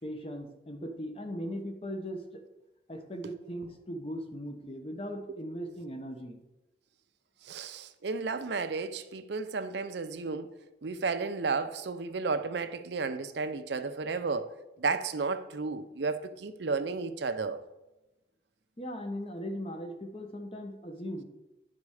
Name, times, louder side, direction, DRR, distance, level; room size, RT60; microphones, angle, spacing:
voice 1, 0.0-2.4 2.9-6.4 18.8-21.2, equal, 30° left, 0.8 m, -39 dB
voice 2, 7.5-10.5 10.8-14.5 14.8-17.6, right 4 dB, 70° right, 0.5 m, -33 dB
9.7 x 4.3 x 4.8 m
head